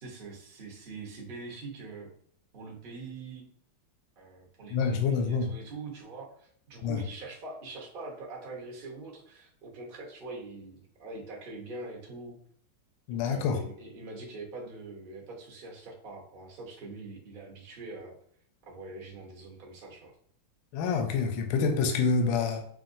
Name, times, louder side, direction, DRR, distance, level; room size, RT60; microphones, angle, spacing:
voice 1, 0.0-2.1 2.5-3.5 4.2-12.4 13.1-18.2 18.7-20.1, right 3 dB, 45° right, -2 dB, 0.7 m, -43 dB
voice 2, 4.7-5.5 6.8-7.0 13.1-13.6 20.7-22.7, left 5 dB, 75° left, 4 dB, 1.3 m, -27 dB
5.7 x 2.5 x 2.5 m, 0.63 s
omnidirectional pair, 2.3 m